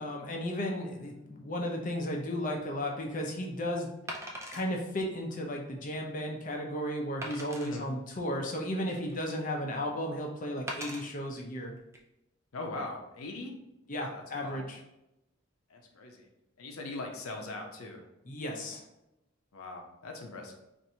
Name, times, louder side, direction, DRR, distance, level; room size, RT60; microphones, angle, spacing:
voice 1, 0.0-3.9 4.5-11.7 13.9-14.8 18.3-18.8, equal, 40° left, 1 dB, 0.6 m, -34 dB
Wood, 2.5-2.6 4.1-4.7 5.3-5.4 5.9-6.0 7.2-7.7 8.5-9.3 10.7-11.0 11.8-12.0, right 1 dB, 15° right, 0.3 m, -40 dB
voice 2, 7.6-7.9 12.5-13.6 13.9-14.6 15.7-16.3 16.6-18.0 19.5-20.5, left 2 dB, 85° left, 2 dB, 0.6 m, -41 dB
4.4 x 2.6 x 2.8 m, 0.91 s
head